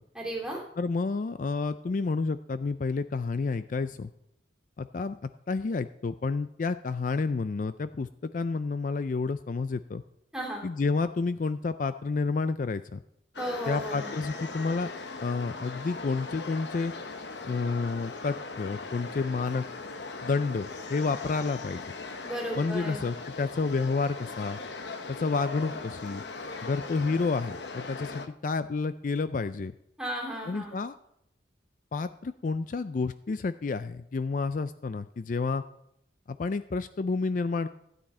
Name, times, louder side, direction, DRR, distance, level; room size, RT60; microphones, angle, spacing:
voice 1, 0.1-0.6 10.3-10.7 13.4-14.1 22.2-23.0 30.0-30.8, right 1 dB, 5° right, -3 dB, 2.7 m, -34 dB
voice 2, 0.8-4.1 4.8-10.0 10.6-13.0 13.7-14.9 15.2-16.9 17.4-19.6 20.2-21.8 22.6-24.6 25.1-26.2 26.6-29.7 30.4-31.0 31.9-35.6 36.3-37.7, left 4 dB, 45° left, 12 dB, 0.4 m, -30 dB
sound 1, 13.3-28.3, left 3 dB, 70° left, 0.9 m, -39 dB
15.5 x 9.5 x 4.3 m, 0.79 s
head